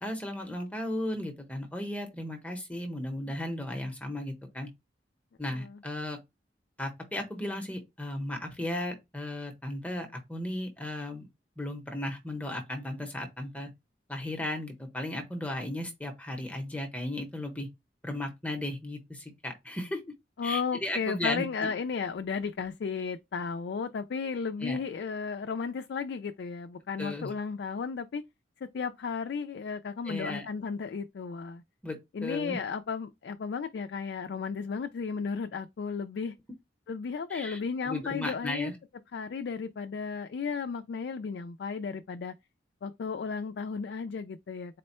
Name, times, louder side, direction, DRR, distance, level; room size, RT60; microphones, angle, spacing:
voice 1, 0.0-4.7 5.4-6.2 6.8-11.3 11.6-13.7 14.1-17.7 18.0-20.0 20.4-21.7 24.6-24.8 27.0-27.3 30.0-30.5 31.8-32.6 37.3-38.7, left 1 dB, 10° left, 0.8 m, -35 dB
voice 2, 5.5-5.8 20.4-28.2 28.6-31.6 32.1-36.3 36.9-38.7 39.1-42.3 42.8-44.8, left 5 dB, 65° left, 0.3 m, -34 dB
4.2 x 2.1 x 4.1 m
head